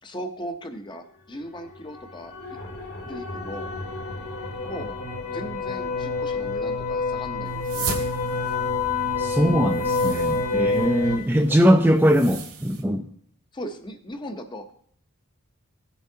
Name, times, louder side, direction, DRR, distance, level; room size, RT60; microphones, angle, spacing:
voice 1, 0.0-2.4 3.1-3.7 4.6-5.0 5.3-7.9 11.5-11.6 12.2-12.4 13.5-14.7, equal, 20° left, 7 dB, 0.7 m, -37 dB
sound 1, 1.4-11.2, left 3 dB, 70° left, 2.3 m, -28 dB
sound 2, 7.4-12.8, right 5 dB, 85° right, 2.0 m, -38 dB
voice 2, 9.2-13.1, equal, 10° right, 3 dB, 0.4 m, -21 dB
17.0 x 7.1 x 2.8 m, 0.63 s
head